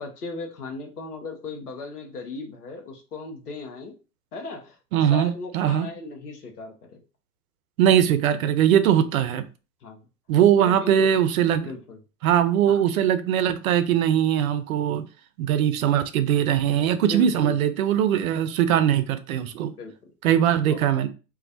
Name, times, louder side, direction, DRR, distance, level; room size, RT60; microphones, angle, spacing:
voice 1, 0.0-3.9 4.3-7.0 9.8-10.1 10.6-11.1 11.6-12.0 12.7-12.8 17.1-17.6 19.8-20.1 20.7-20.8, left 3 dB, 90° left, 4 dB, 0.7 m, -37 dB
voice 2, 4.9-5.9 7.8-9.5 10.3-11.7 12.2-15.0 15.4-19.7 20.2-21.1, right 10 dB, 70° right, 11 dB, 0.5 m, -21 dB
2.3 x 2.1 x 2.5 m, 0.33 s
figure-of-eight pair, 85°, 44 cm